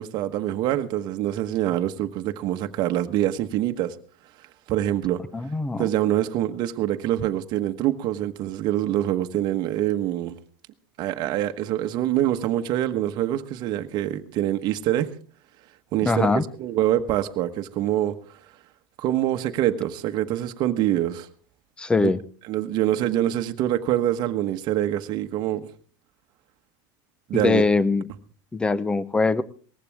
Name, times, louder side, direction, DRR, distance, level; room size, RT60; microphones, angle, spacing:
voice 1, 0.0-4.0 4.7-5.2 5.8-10.4 11.0-15.1 15.9-16.3 16.6-18.2 19.0-21.3 22.0-22.1 22.5-25.7 27.3-27.6, right 12 dB, 40° right, 1.2 m, -25 dB
voice 2, 5.3-5.9 16.1-16.5 21.8-22.2 27.3-28.0 28.5-29.4, left 3 dB, 10° left, 0.7 m, -22 dB
19.0 x 15.0 x 3.5 m
supercardioid pair, 145°, 11 cm